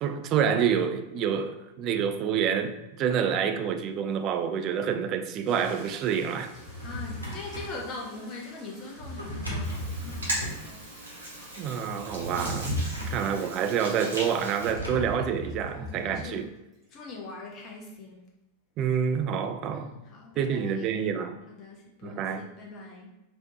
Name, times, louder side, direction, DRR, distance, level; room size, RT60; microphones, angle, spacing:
voice 1, 0.0-6.5 11.6-12.8 13.1-16.4 18.8-19.9 20.4-21.4 22.0-22.4, right 7 dB, 35° right, 7 dB, 0.3 m, -28 dB
Toilet flush, 4.1-4.2 4.8-17.3, right 1 dB, 10° right, 1.3 m, -52 dB
Drawer open or close, 6.5-7.8 9.0-10.6 12.0-13.3 14.6-16.3, equal, 90° left, 0.8 m, -35 dB
voice 2, 6.8-10.9 12.3-12.6 12.9-13.2 14.9-15.0 15.7-16.5 16.9-18.2 19.7-20.9 21.5-23.1, left 3 dB, 30° left, -1 dB, 0.7 m, -42 dB
Hands, 9.6-14.7, right 1 dB, 70° right, 1.0 m, -38 dB
3.2 x 3.0 x 2.8 m, 0.98 s
figure-of-eight pair, 90°, 0 cm